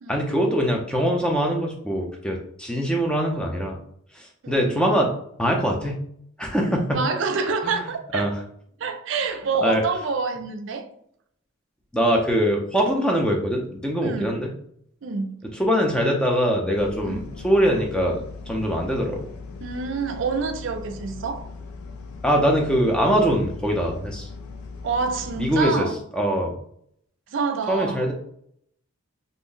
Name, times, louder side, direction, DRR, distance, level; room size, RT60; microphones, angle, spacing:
voice 1, 0.1-3.8 4.2-5.1 5.4-6.0 6.4-7.0 7.6-7.7 8.1-8.3 9.6-9.8 11.9-14.5 15.6-19.3 22.2-24.3 25.4-25.9 26.1-26.5 27.7-28.1, equal, 5° left, 0.4 m, -22 dB
voice 2, 4.4-5.0 6.9-8.3 8.8-10.9 14.0-14.4 15.0-15.5 17.0-17.2 19.6-21.5 24.8-26.0 27.3-28.1, right 4 dB, 60° right, 0.4 m, -27 dB
sound 1, 16.7-25.7, left 4 dB, 85° left, 0.4 m, -39 dB
2.5 x 2.0 x 3.7 m
head